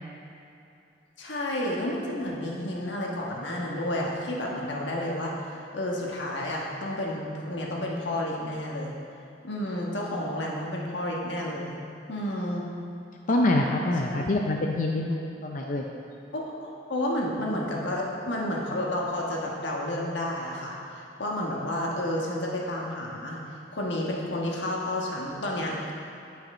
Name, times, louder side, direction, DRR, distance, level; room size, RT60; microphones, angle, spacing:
voice 1, 1.2-5.3 5.7-8.9 9.4-11.8 12.1-12.6 14.1-14.2 16.3-16.4 16.9-20.8 21.2-23.4 23.7-25.9, left 1 dB, 85° left, -2 dB, 1.3 m, -30 dB
voice 2, 13.3-15.9, left 2 dB, 45° left, 0 dB, 0.5 m, -25 dB
10.0 x 5.8 x 4.3 m, 2.7 s
head